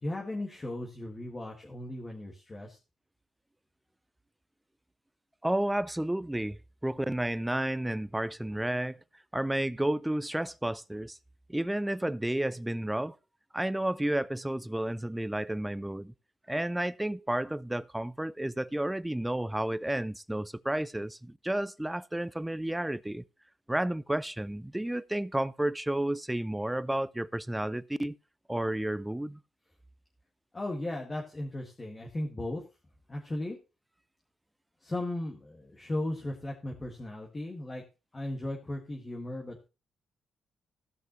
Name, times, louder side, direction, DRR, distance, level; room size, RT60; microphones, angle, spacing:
voice 1, 0.0-2.8 30.5-32.6 33.1-33.6 34.8-37.8 38.1-39.6, left 1 dB, 25° left, 1.8 m, -36 dB
voice 2, 5.4-9.0 9.3-11.2 11.5-13.2 13.5-16.1 16.5-23.2 23.7-28.2 28.5-29.4, right 1 dB, 10° right, 0.4 m, -31 dB
16.0 x 5.9 x 3.1 m
cardioid pair, 85°, 0 cm